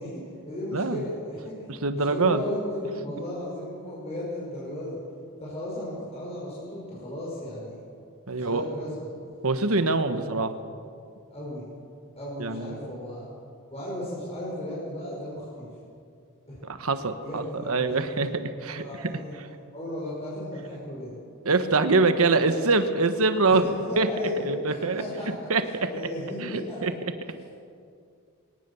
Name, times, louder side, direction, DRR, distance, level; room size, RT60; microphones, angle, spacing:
voice 1, 0.0-5.0 5.4-7.8 8.3-9.1 10.1-10.4 11.3-11.7 12.2-13.3 13.7-15.7 16.5-16.6 17.2-18.3 18.7-19.4 19.7-21.2 23.5-24.3 24.7-25.6 25.8-26.8, left 1 dB, 30° left, -6 dB, 5.7 m, -35 dB
voice 2, 0.7-1.1 1.7-2.4 8.3-8.7 9.4-10.5 12.4-12.8 16.6-19.1 21.4-23.6 24.0-24.1 24.4-25.0 25.5-25.9 26.4-26.9, right 3 dB, 70° right, 9 dB, 1.2 m, -24 dB
24.0 x 18.5 x 7.0 m, 2.4 s
head